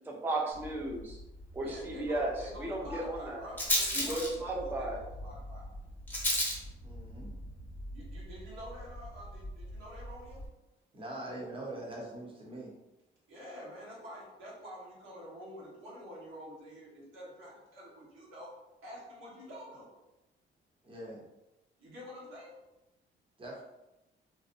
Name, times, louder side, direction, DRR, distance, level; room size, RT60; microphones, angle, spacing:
voice 1, 0.1-1.2 1.5-2.3 2.6-3.5 3.9-5.0, right 2 dB, 10° right, -2 dB, 0.4 m, -34 dB
Rattle, 0.5-10.5, left 1 dB, 10° left, 0.8 m, -37 dB
voice 2, 1.6-5.6 7.9-10.4 13.3-18.5 18.8-19.9 21.8-22.6, equal, 80° right, -6 dB, 1.1 m, -47 dB
voice 3, 6.8-7.4 10.9-12.7 20.8-21.2 23.4-23.6, right 1 dB, 25° right, -3 dB, 0.8 m, -43 dB
2.6 x 2.0 x 2.5 m, 0.96 s
cardioid pair, 90°, 20 cm